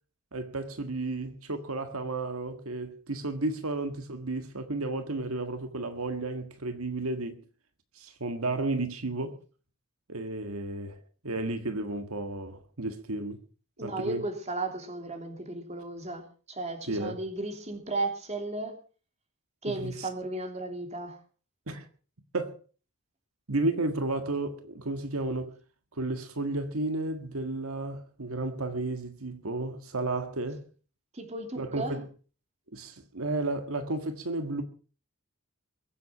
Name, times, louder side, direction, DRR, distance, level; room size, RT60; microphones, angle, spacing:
voice 1, 0.3-7.4 8.0-9.4 10.1-11.0 11.2-13.4 13.8-14.2 16.9-17.2 19.7-20.1 21.7-21.9 22.3-22.5 23.5-25.5 25.9-30.6 31.6-32.0 32.7-34.6, right 2 dB, 80° right, 1.7 m, -32 dB
voice 2, 13.8-18.8 19.6-21.2 31.1-31.9, right 2 dB, 30° right, 3.1 m, -35 dB
22.5 x 8.2 x 6.0 m
head